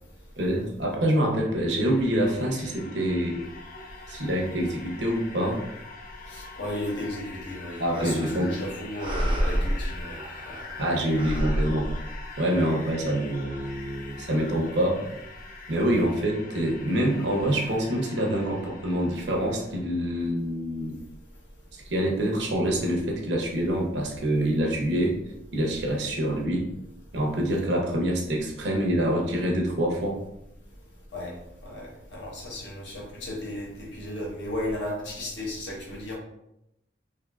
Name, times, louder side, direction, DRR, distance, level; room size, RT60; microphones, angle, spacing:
voice 1, 0.4-3.4 4.1-5.6 7.8-8.6 10.8-11.9 12.4-15.1 15.7-21.0 21.8-25.2 25.5-26.7 27.1-30.2, right 1 dB, 75° right, 0 dB, 0.8 m, -26 dB
sound 1, 1.3-19.8, left 3 dB, 50° left, 0.5 m, -44 dB
voice 2, 6.3-10.2 10.4-10.6 31.1-31.3 31.6-36.1, left 1 dB, 90° left, -3 dB, 1.1 m, -34 dB
sound 2, 7.9-8.6 8.9-10.8 11.1-12.7, equal, 30° right, 0.4 m, -29 dB
3.6 x 2.6 x 2.4 m, 0.84 s
head